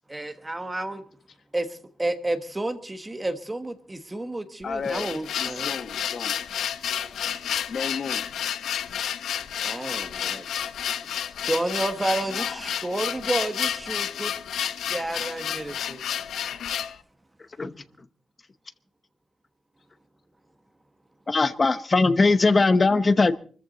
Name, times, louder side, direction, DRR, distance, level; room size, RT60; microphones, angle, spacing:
voice 1, 0.1-1.0 1.5-5.7 9.6-10.4 11.5-14.3 14.9-16.0, right 2 dB, 10° right, 1.3 m, -30 dB
sound 1, 4.6-17.0, left 9 dB, 85° left, 1.0 m, -30 dB
voice 2, 4.6-5.1 5.4-6.4 7.7-8.2 12.3-12.7, left 5 dB, 45° left, 1.4 m, -33 dB
voice 3, 21.3-23.3, left 3 dB, 25° left, 0.8 m, -20 dB
24.0 x 14.5 x 4.0 m
wide cardioid pair, 175°, 0 cm